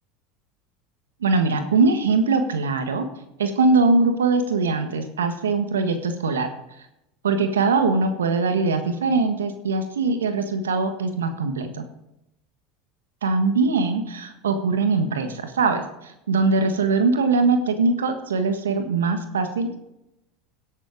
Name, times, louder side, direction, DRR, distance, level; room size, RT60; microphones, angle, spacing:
voice 1, 1.2-3.1 3.4-6.5 7.2-11.8 13.2-19.8, right 3 dB, 85° right, 8 dB, 1.4 m, -22 dB
17.0 x 7.4 x 5.0 m, 0.86 s
hypercardioid pair, 80°, 0 cm